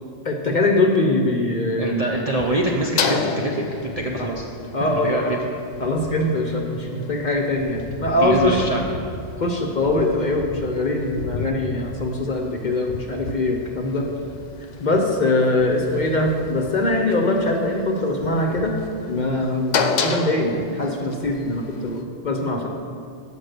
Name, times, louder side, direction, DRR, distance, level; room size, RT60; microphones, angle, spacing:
voice 1, 0.2-2.1 4.2-4.3 4.7-5.1 5.8-8.7 9.4-14.1 14.8-18.8 19.1-22.7, left 2 dB, 45° left, 2 dB, 0.7 m, -22 dB
voice 2, 1.8-4.5 4.9-5.2 7.0-7.1 8.2-9.0, right 2 dB, 45° right, 0 dB, 0.5 m, -25 dB
sound 1, 2.4-22.0, left 5 dB, 80° left, 1.0 m, -32 dB
7.7 x 5.4 x 6.5 m, 2.4 s
omnidirectional pair, 1.3 m